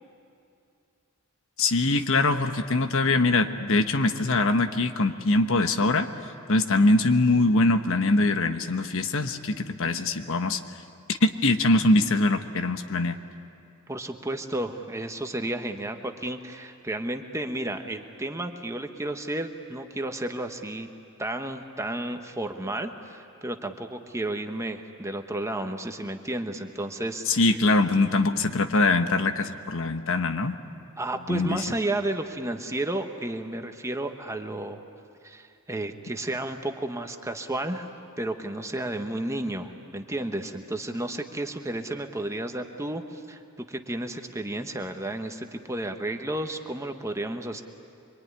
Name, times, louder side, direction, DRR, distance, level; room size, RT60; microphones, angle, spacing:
voice 1, 1.6-6.1 6.5-10.6 11.1-13.2 27.3-30.5 31.3-31.5, left 2 dB, 65° left, 8 dB, 1.1 m, -23 dB
voice 2, 13.9-20.9 21.2-27.6 31.0-34.8 35.2-37.9 38.2-43.4 43.7-47.6, right 1 dB, 15° right, 5 dB, 1.2 m, -32 dB
25.5 x 23.5 x 9.7 m, 2.5 s
head